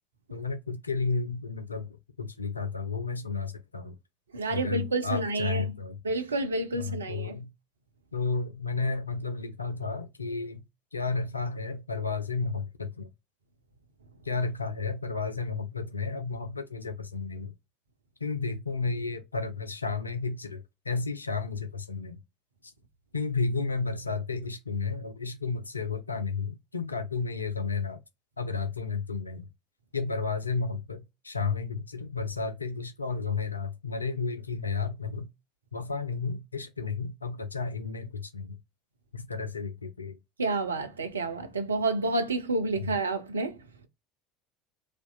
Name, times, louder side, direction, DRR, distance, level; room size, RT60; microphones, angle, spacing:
voice 1, 0.3-4.0 4.5-6.0 6.7-7.5 8.1-10.6 10.9-13.1 14.2-17.5 18.2-22.2 23.1-28.0 28.4-29.5 29.9-35.3 35.7-38.6 39.1-40.2 42.8-42.9, left 4 dB, 85° left, 0.5 m, -32 dB
voice 2, 4.3-5.7 6.0-7.3 40.4-43.6, right 2 dB, 80° right, 0.6 m, -29 dB
4.2 x 2.6 x 2.3 m
figure-of-eight pair, 65°, 0 cm